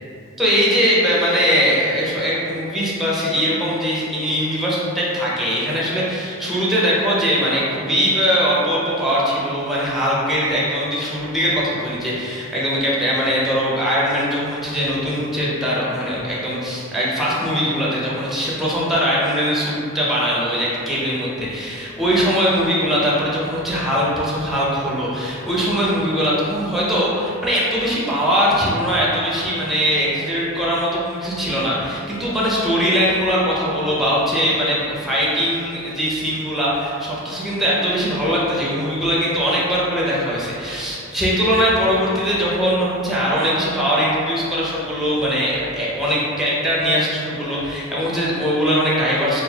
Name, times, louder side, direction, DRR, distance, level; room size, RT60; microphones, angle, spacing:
voice 1, 0.4-49.4, equal, ahead, -7 dB, 0.5 m, -21 dB
3.8 x 2.3 x 2.8 m, 2.6 s
head